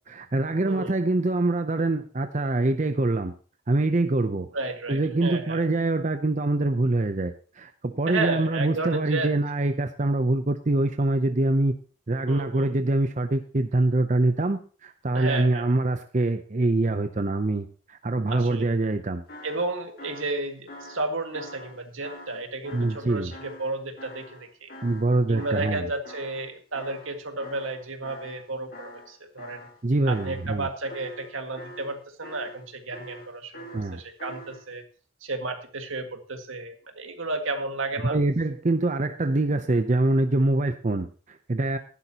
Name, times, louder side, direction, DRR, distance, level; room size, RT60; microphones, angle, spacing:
voice 1, 0.1-3.3 3.7-4.5 4.9-11.7 12.1-19.2 22.7-23.3 24.8-25.9 29.8-30.7 33.7-34.0 38.0-41.8, right 2 dB, 35° right, 8 dB, 0.6 m, -24 dB
voice 2, 4.5-5.6 8.1-9.4 12.3-12.7 15.1-15.7 18.3-18.7 19.4-24.7 25.3-29.6 30.1-34.8 35.2-38.2, right 2 dB, 80° right, 5 dB, 1.9 m, -32 dB
sound 1, 19.3-25.1 25.4-28.5 28.7-29.8 30.1-30.5 30.8-32.6 32.9-34.6, left 1 dB, 45° left, 2.1 m, -45 dB
14.5 x 11.0 x 2.9 m, 0.39 s
head